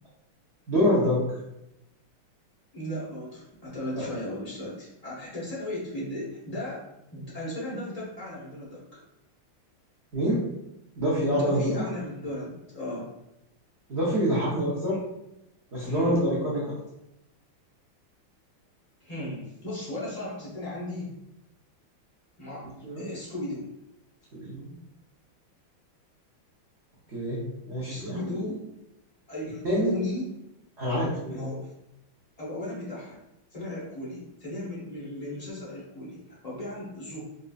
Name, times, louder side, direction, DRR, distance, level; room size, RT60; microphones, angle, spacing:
voice 1, 0.7-1.2 3.9-4.0 10.1-10.4 11.0-11.9 13.9-15.0 15.7-16.7 22.8-23.1 24.3-24.7 27.1-27.4 27.6-28.4 29.6-29.9 30.8-31.4, equal, 70° right, -8 dB, 0.6 m, -26 dB
voice 2, 2.7-6.8 7.1-9.0 11.3-13.1 15.8-16.2 19.0-21.1 22.4-22.7 23.0-23.7 27.9-28.6 29.3-30.3 31.3-31.7 32.4-33.2 33.5-37.2, left 1 dB, 40° left, -7 dB, 0.5 m, -36 dB
4.2 x 2.4 x 2.4 m, 0.87 s
omnidirectional pair, 2.3 m